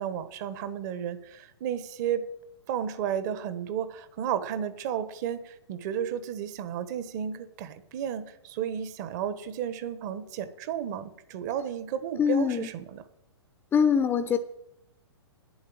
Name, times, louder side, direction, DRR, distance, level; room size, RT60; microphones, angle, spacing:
voice 1, 0.0-2.2 2.7-13.0, right 9 dB, 40° right, 12 dB, 1.3 m, -33 dB
voice 2, 12.2-12.7 13.7-14.4, left 7 dB, 15° left, 9 dB, 0.8 m, -23 dB
10.0 x 7.9 x 8.8 m, 0.81 s
hypercardioid pair, 120°, 14 cm